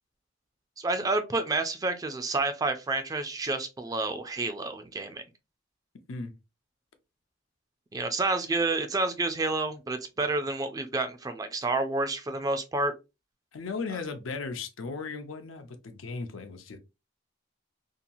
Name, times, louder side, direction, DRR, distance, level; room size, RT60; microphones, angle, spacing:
voice 1, 0.8-5.2 7.9-12.9, right 2 dB, 20° right, 0.3 m, -29 dB
voice 2, 13.5-16.8, left 4 dB, 90° left, 0.6 m, -36 dB
2.8 x 2.3 x 2.6 m
head